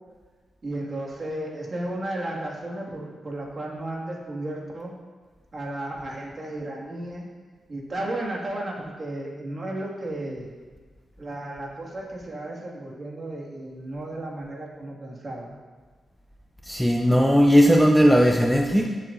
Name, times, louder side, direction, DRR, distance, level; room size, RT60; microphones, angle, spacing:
voice 1, 0.6-4.9 5.5-7.3 7.7-10.5 11.2-15.6, right 1 dB, 40° right, -3 dB, 2.2 m, -34 dB
voice 2, 16.7-18.9, equal, ahead, 1 dB, 0.7 m, -17 dB
14.5 x 7.6 x 2.7 m, 1.5 s
cardioid pair, 85°, 0 cm